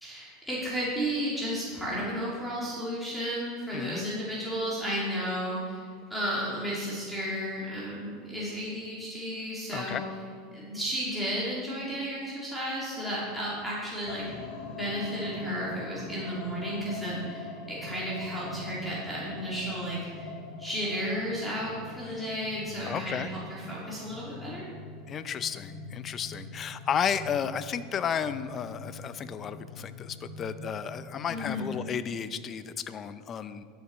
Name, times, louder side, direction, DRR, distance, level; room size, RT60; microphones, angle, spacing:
voice 1, 0.0-10.0 10.5-14.3 14.8-20.3 20.6-24.7 31.3-31.7, equal, ahead, -9 dB, 2.5 m, -33 dB
voice 2, 3.7-4.0 9.7-10.0 22.1-22.2 22.8-23.3 25.1-33.6, left 7 dB, 30° left, 13 dB, 0.5 m, -33 dB
sound 1, 14.0-31.7, left 4 dB, 65° left, 1.5 m, -43 dB
11.0 x 7.0 x 4.3 m, 2.1 s
supercardioid pair, 130°, 0 cm